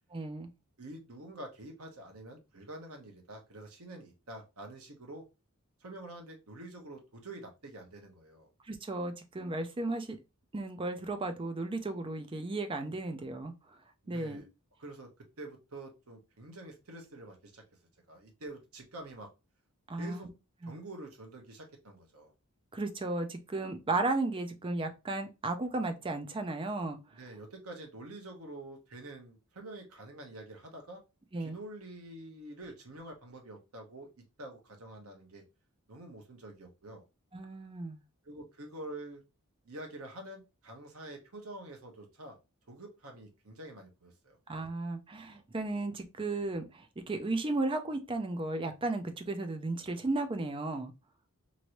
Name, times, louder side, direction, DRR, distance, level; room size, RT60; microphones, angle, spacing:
voice 1, 0.1-0.5 8.6-10.2 10.5-13.5 14.1-14.4 19.9-20.3 20.6-20.8 22.7-27.0 31.3-31.6 37.3-38.0 44.5-50.9, right 2 dB, 25° right, 0.4 m, -34 dB
voice 2, 0.8-5.3 5.8-8.5 14.0-14.5 14.8-17.6 18.1-19.3 19.9-20.3 20.6-22.3 27.1-31.0 31.4-35.4 35.9-37.0 38.2-39.2 39.6-42.4 42.7-44.4, right 1 dB, 75° right, 1.0 m, -47 dB
3.0 x 2.6 x 2.9 m
head